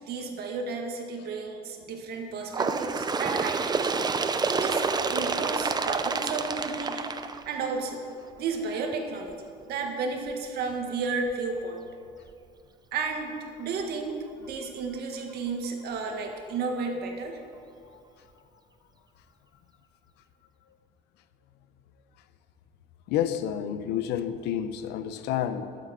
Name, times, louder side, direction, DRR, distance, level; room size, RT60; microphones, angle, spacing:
voice 1, 0.0-3.9 4.4-4.8 5.1-7.2 7.4-8.0 8.4-11.8 12.9-17.4, right 4 dB, 70° right, 2.0 m, -33 dB
Bird, 2.5-7.9 8.8-8.9 9.3-9.4 10.3-10.4 11.3-11.4 12.3-12.4, right 4 dB, 25° right, 0.6 m, -28 dB
voice 2, 17.8-18.3 23.1-25.8, left 10 dB, 90° left, 0.8 m, -30 dB
12.5 x 8.0 x 7.6 m
cardioid pair, 110°, 17 cm